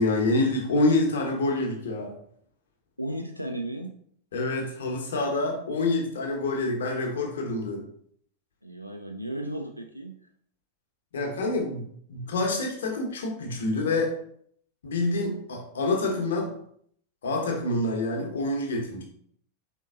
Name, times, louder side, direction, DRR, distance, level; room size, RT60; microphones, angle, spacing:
voice 1, 0.0-2.1 4.3-7.8 11.1-14.2 14.8-16.5 17.2-19.0, left 2 dB, 65° left, 2 dB, 0.9 m, -27 dB
voice 2, 3.0-3.9 8.6-10.2, right 1 dB, 90° left, 3 dB, 0.3 m, -34 dB
4.4 x 3.8 x 2.4 m, 0.64 s
figure-of-eight pair, 90°, 0 cm